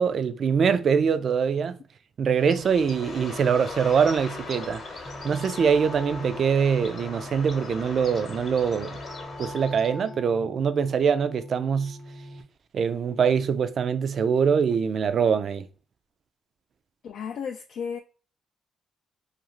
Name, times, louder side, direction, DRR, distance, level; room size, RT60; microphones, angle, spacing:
voice 1, 0.0-1.8 2.2-4.8 5.2-9.0 9.4-12.0 12.7-15.7, right 6 dB, 55° right, 0.3 m, -23 dB
Bird, 2.4-10.1, left 3 dB, 50° left, 0.9 m, -39 dB
sound 1, 5.0-12.4, equal, 10° left, 0.5 m, -41 dB
voice 2, 17.0-18.0, left 7 dB, 70° left, 0.3 m, -33 dB
2.5 x 2.4 x 2.9 m
cardioid pair, 90°, 0 cm